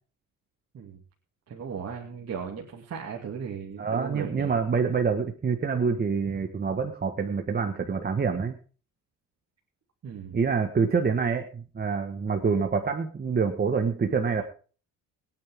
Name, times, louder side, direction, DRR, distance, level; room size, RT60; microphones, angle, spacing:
voice 1, 1.5-4.5 10.0-10.4, right 6 dB, 45° right, 0 dB, 2.8 m, -37 dB
voice 2, 3.8-8.6 10.3-14.4, right 5 dB, 30° right, 5 dB, 1.5 m, -26 dB
22.5 x 9.4 x 3.7 m, 0.39 s
cardioid pair, 115°, 34 cm